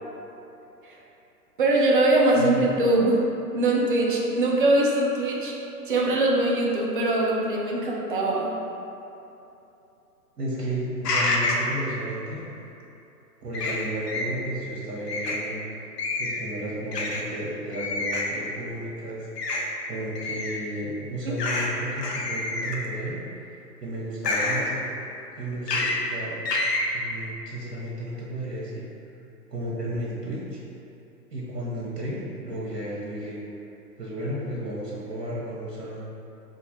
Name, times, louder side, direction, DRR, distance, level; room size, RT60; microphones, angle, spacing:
voice 1, 1.6-3.2 3.5-5.5 5.9-8.5, right 2 dB, 35° right, -2 dB, 0.4 m, -22 dB
voice 2, 2.3-2.7 10.4-12.4 13.4-15.6 16.2-19.6 19.9-24.8 25.4-26.5 26.9-28.9 29.5-30.6 31.3-33.4 34.0-36.0, right 1 dB, 75° right, -6 dB, 0.9 m, -33 dB
sound 1, 11.0-11.7 13.5-14.3 15.1-15.4 16.0-16.4 16.9-17.2 17.7-18.3 19.4-19.6 20.2-20.6 21.4-21.7 22.0-22.9 24.2-24.6 25.7-26.0 26.5-26.8, left 2 dB, 80° left, 0.7 m, -27 dB
3.2 x 2.4 x 4.2 m, 2.9 s
figure-of-eight pair, 120°, 48 cm